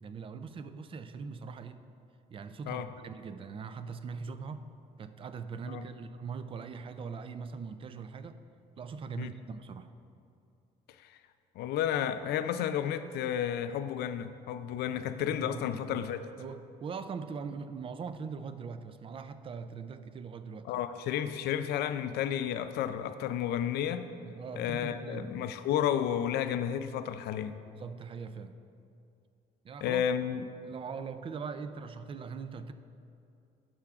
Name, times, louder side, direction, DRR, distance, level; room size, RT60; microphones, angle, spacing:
voice 1, 0.0-1.8 2.3-4.6 5.0-8.4 8.8-9.9 15.2-20.8 24.2-25.3 27.7-28.6 29.6-30.2 30.7-32.7, right 5 dB, 30° right, 11 dB, 0.3 m, -41 dB
voice 2, 11.6-16.2 20.6-24.1 24.6-27.5 29.8-30.4, left 9 dB, 75° left, 11 dB, 0.4 m, -32 dB
11.5 x 5.8 x 2.4 m, 2.6 s
cardioid pair, 110°, 17 cm